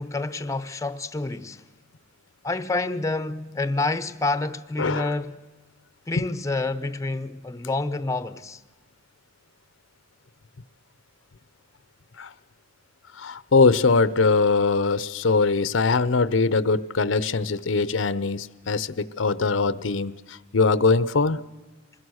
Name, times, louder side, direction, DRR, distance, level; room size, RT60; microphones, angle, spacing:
voice 1, 0.0-1.6 2.4-5.4 6.1-8.6, left 2 dB, 15° left, 0.7 m, -28 dB
voice 2, 4.8-5.1 12.2-12.3 13.1-21.4, left 4 dB, 80° left, 0.7 m, -22 dB
25.0 x 21.0 x 6.3 m
head